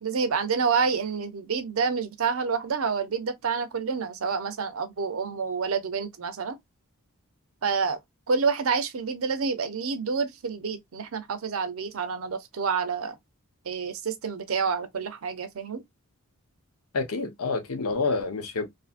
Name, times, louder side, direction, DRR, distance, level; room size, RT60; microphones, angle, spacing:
voice 1, 0.0-6.6 7.6-8.0 8.3-13.2 13.6-15.8, right 5 dB, 75° right, 0.6 m, -28 dB
voice 2, 16.9-18.6, left 3 dB, 85° left, 0.7 m, -28 dB
2.7 x 2.5 x 2.4 m
head